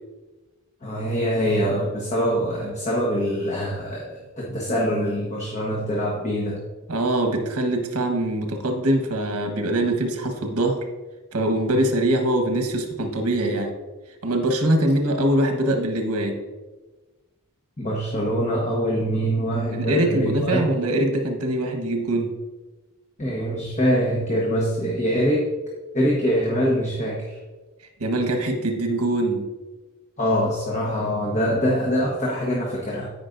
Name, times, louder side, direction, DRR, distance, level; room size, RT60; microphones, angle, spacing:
voice 1, 0.8-4.1 4.4-6.6 17.8-20.6 23.2-25.5 25.9-27.4 30.2-33.1, equal, 30° left, -4 dB, 1.2 m, -24 dB
voice 2, 6.9-10.8 11.3-13.7 14.2-16.4 19.7-22.3 28.0-29.4, right 1 dB, 80° right, 3 dB, 1.3 m, -23 dB
13.0 x 5.3 x 2.6 m, 1.2 s
head